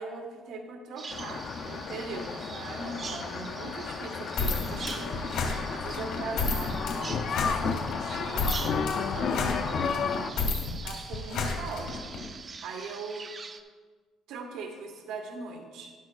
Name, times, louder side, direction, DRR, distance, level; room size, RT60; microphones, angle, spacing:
voice 1, 0.0-5.3 5.7-10.4 10.8-13.3 14.3-15.9, right 3 dB, 85° right, 3 dB, 1.3 m, -40 dB
Bird vocalization bird call bird song, 1.0-13.6, right 5 dB, 30° right, 0.5 m, -44 dB
sound 1, 1.1-10.3, left 6 dB, 45° left, 0.4 m, -33 dB
sound 2, 4.4-12.2, left 4 dB, 85° left, 1.6 m, -32 dB
12.0 x 9.9 x 2.4 m, 1.5 s
cardioid pair, 165°, 0 cm